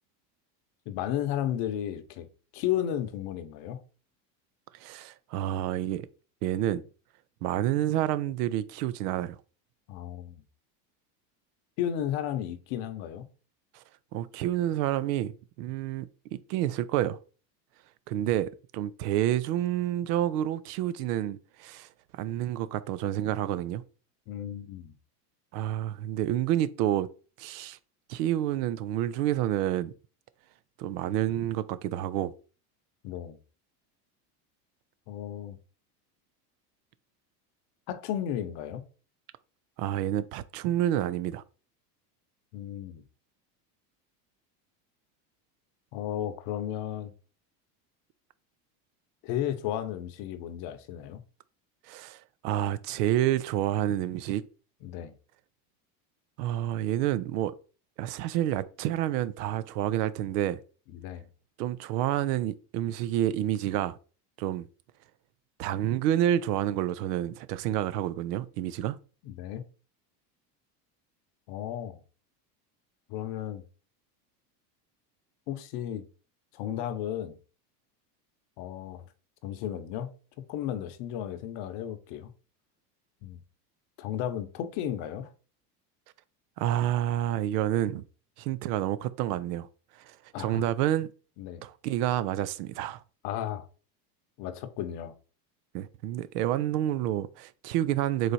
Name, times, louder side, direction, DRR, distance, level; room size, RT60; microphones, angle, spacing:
voice 1, 0.9-2.3 2.5-3.8 9.9-10.4 11.8-13.3 24.3-24.9 33.0-33.4 35.1-35.6 37.9-38.8 42.5-43.0 45.9-47.1 49.2-51.2 54.8-55.1 60.9-61.3 69.2-69.6 71.5-72.0 73.1-73.6 75.5-76.1 76.5-77.4 78.6-79.1 79.4-82.3 83.2-83.4 84.0-85.3 90.3-90.6 91.4-91.6 93.2-93.7 94.4-95.1, left 11 dB, 60° left, 0.8 m, -34 dB
voice 2, 4.8-6.1 6.4-6.8 7.4-9.4 13.7-13.8 14.1-17.2 18.1-23.8 25.5-27.1 27.4-27.8 28.1-29.9 30.8-32.3 39.8-41.4 51.9-54.4 56.4-57.5 58.0-60.6 61.6-64.0 64.4-64.7 65.6-69.0 86.6-88.0 88.4-89.7 90.1-91.1 91.6-93.0 95.7-98.3, right 12 dB, 75° right, 0.6 m, -29 dB
4.0 x 3.2 x 4.1 m
supercardioid pair, 110°, 48 cm